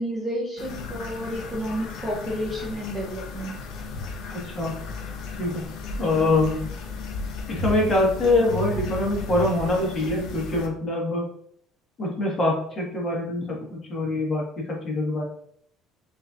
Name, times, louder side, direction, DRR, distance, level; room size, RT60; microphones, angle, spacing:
voice 1, 0.0-3.5 6.0-6.2, equal, 5° right, -3 dB, 0.7 m, -31 dB
sound 1, 0.6-10.7, left 3 dB, 60° left, 0.7 m, -34 dB
voice 2, 4.3-4.8 5.4-5.6 6.0-6.6 7.5-11.3 12.0-15.2, left 2 dB, 30° left, -2 dB, 1.5 m, -24 dB
6.2 x 2.8 x 2.5 m, 0.65 s
cardioid pair, 145°, 0 cm